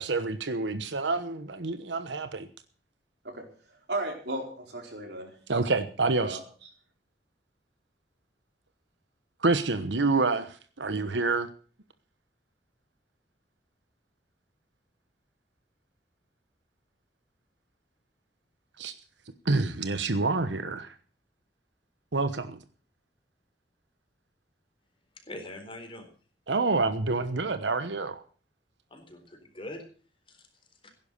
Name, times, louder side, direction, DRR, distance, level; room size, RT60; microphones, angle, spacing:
voice 1, 0.0-2.5 5.5-6.4 9.4-11.5 18.8-18.9 19.5-20.9 22.1-22.6 26.5-28.2, right 3 dB, 80° right, 10 dB, 1.1 m, -27 dB
voice 2, 3.2-5.3 6.0-6.7, right 2 dB, 65° right, 2 dB, 4.6 m, -36 dB
voice 3, 25.1-26.1 28.9-29.9 30.3-30.5 30.8-30.9, left 1 dB, 30° left, 5 dB, 4.1 m, -43 dB
16.5 x 11.0 x 6.7 m, 0.42 s
head